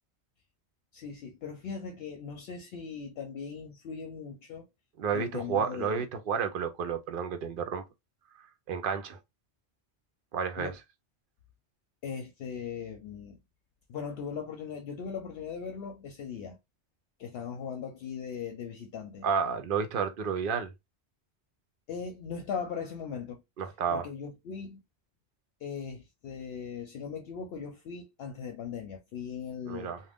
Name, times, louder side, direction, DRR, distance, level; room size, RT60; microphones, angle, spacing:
voice 1, 0.9-4.7 5.1-6.0 10.6-10.8 12.0-13.4 13.9-16.6 17.2-19.3 21.9-23.4 23.9-24.8 25.6-29.9, left 6 dB, 70° left, 0.8 m, -39 dB
voice 2, 5.0-7.8 8.7-9.2 10.3-10.7 19.2-20.7 23.6-24.0 29.7-30.0, right 6 dB, 60° right, 0.7 m, -31 dB
2.4 x 2.1 x 3.4 m
omnidirectional pair, 1.1 m